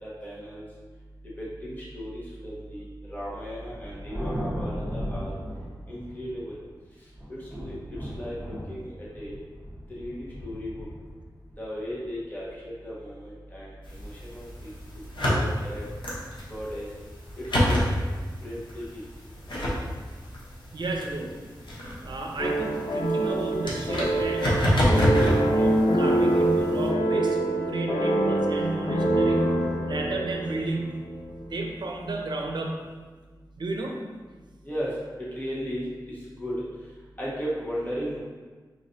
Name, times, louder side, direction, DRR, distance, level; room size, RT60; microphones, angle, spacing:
voice 1, 0.0-0.6 1.4-5.3 5.9-6.5 7.3-7.7 8.0-9.4 10.0-10.9 11.6-13.7 14.0-14.7 15.2-15.8 16.5-16.9 17.4-17.9 18.4-19.0 34.6-34.9 35.3-36.6 37.2-38.2, equal, 20° left, -8 dB, 1.4 m, -36 dB
Thunder, 3.6-6.7 7.2-12.5, equal, 5° right, 1.2 m, -36 dB
sound 1, 13.8-26.9, equal, 80° left, 1.0 m, -29 dB
voice 2, 20.7-21.4 22.0-29.5 29.9-31.0 31.5-32.8 33.6-34.0, right 2 dB, 70° right, 1 dB, 0.6 m, -32 dB
sound 2, 22.4-31.4, right 1 dB, 65° left, 0.6 m, -25 dB
5.1 x 3.0 x 2.7 m, 1.4 s
wide cardioid pair, 70°, 8 cm